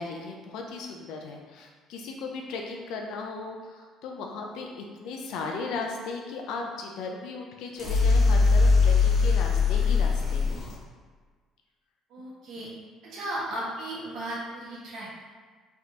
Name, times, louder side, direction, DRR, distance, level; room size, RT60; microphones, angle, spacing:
voice 1, 0.0-4.7 5.0-10.6, left 4 dB, 80° left, 2 dB, 0.4 m, -36 dB
sound 1, 7.8-10.7, left 4 dB, 35° left, 1.3 m, -21 dB
voice 2, 12.1-12.7 13.0-15.2, right 1 dB, 70° right, -6 dB, 1.1 m, -35 dB
3.3 x 2.4 x 2.8 m, 1.5 s
cardioid pair, 115°, 0 cm